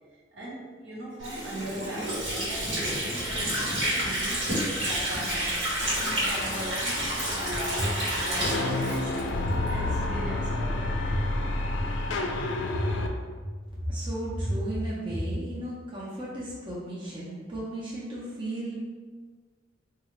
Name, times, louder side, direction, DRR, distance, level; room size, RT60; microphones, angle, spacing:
voice 1, 0.1-4.6 4.9-9.4 9.7-11.0, right 1 dB, 65° right, -5 dB, 0.9 m, -39 dB
Water / Sink (filling or washing), 1.2-9.8, right 1 dB, 85° right, 1.2 m, -30 dB
sound 1, 5.8-13.1, left 2 dB, 75° left, 0.4 m, -30 dB
sound 2, 7.8-7.9 8.4-8.5 9.4-9.5 10.1-10.2 11.1-11.2 11.7-11.8 12.8-12.9 13.4-13.5 14.4-14.5 15.1-15.2, equal, 25° left, 0.6 m, -34 dB
voice 2, 13.8-18.8, right 1 dB, 25° right, -7 dB, 0.6 m, -34 dB
3.7 x 2.4 x 3.1 m, 1.5 s
head